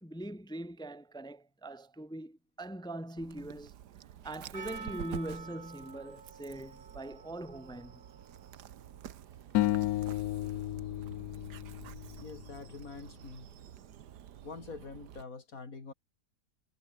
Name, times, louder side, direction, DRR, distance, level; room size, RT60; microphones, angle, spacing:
voice 1, 0.0-3.7 4.2-8.0, right 1 dB, 5° left, 0.4 m, -42 dB
Dog, 3.2-15.2, right 10 dB, 75° right, 1.6 m, -49 dB
Percussion, 4.5-9.8, right 5 dB, 35° right, 1.5 m, -50 dB
sound 1, 9.5-12.8, left 15 dB, 70° left, 1.0 m, -33 dB
voice 2, 12.2-13.5 14.4-15.9, left 4 dB, 55° left, 3.5 m, -45 dB
omnidirectional pair, 1.8 m